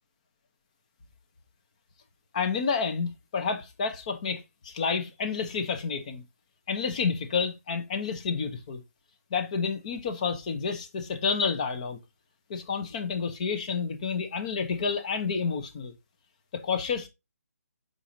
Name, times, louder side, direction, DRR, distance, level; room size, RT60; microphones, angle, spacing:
voice 1, 2.3-6.2 6.7-8.8 9.3-12.0 12.5-15.9 16.5-17.1, left 5 dB, 25° left, 0.9 m, -29 dB
6.8 x 5.2 x 2.9 m
hypercardioid pair, 165°, 8 cm